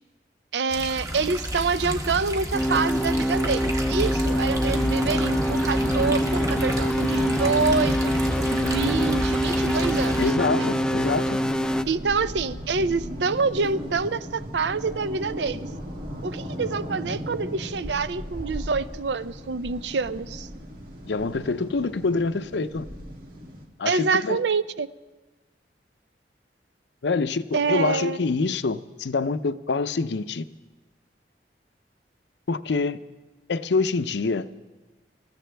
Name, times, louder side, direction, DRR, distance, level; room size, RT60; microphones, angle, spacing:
voice 1, 0.5-8.1 8.5-10.5 11.9-15.7 16.2-20.5 23.8-24.9 27.5-28.2, right 4 dB, 80° right, 15 dB, 0.6 m, -26 dB
sound 1, 0.7-10.3, equal, 20° right, 1.4 m, -30 dB
sound 2, 2.5-11.8, equal, 5° left, 0.5 m, -25 dB
sound 3, 4.3-23.7, equal, 55° right, 2.2 m, -36 dB
voice 2, 10.2-11.4 21.0-22.9 23.8-24.4 27.0-30.5 32.5-33.0 33.5-34.5, left 4 dB, 80° left, 14 dB, 0.6 m, -26 dB
26.0 x 14.5 x 3.4 m, 1.2 s
head